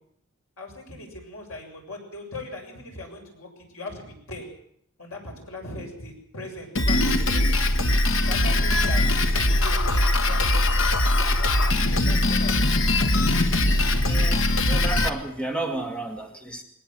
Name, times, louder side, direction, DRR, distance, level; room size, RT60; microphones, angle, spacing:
voice 1, 0.6-4.5 5.0-7.5 8.2-12.8, left 1 dB, 85° left, 2 dB, 7.1 m, -39 dB
Drum kit, 6.7-15.1, left 1 dB, 65° left, 1.6 m, -21 dB
voice 2, 14.0-16.6, right 2 dB, 5° left, 3 dB, 2.1 m, -32 dB
21.5 x 19.0 x 7.7 m, 0.68 s
head